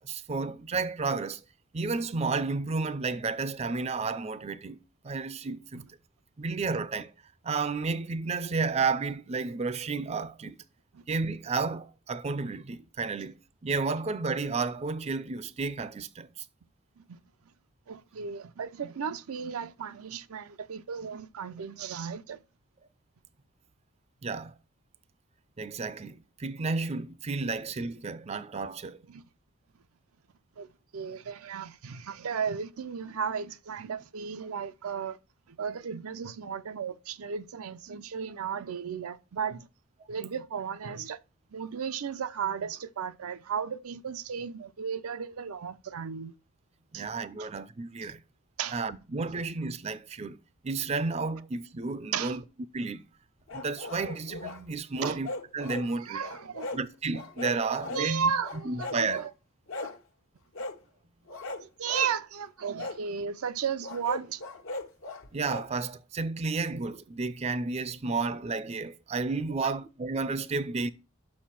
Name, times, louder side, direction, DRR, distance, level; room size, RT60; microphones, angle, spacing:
voice 1, 0.0-1.4 1.7-5.8 6.4-7.1 7.4-10.6 11.1-16.5 24.2-24.5 25.6-29.0 46.9-48.2 48.7-50.4 50.6-52.4 52.7-53.0 53.5-56.2 56.7-58.3 58.6-59.3 65.3-70.9, right 4 dB, 30° right, 0.4 m, -32 dB
voice 2, 17.9-22.4 29.1-29.2 30.6-30.7 30.9-35.2 35.5-39.7 40.1-41.2 41.5-46.3 46.9-47.1 47.4-47.5 48.0-48.1 48.6-48.8 52.1-52.4 55.0-55.2 56.0-56.8 57.6-59.3 59.8-59.9 61.6-64.4 69.5-69.7, right 7 dB, 80° right, 0.5 m, -35 dB
sound 1, 53.5-54.6 55.0-55.9 56.2-56.8 57.1-58.1 58.4-59.2 59.7-60.0 60.5-60.8 61.3-62.1 62.8-63.0 63.8-65.7, left 2 dB, 65° left, 1.0 m, -38 dB
6.5 x 6.0 x 5.8 m
head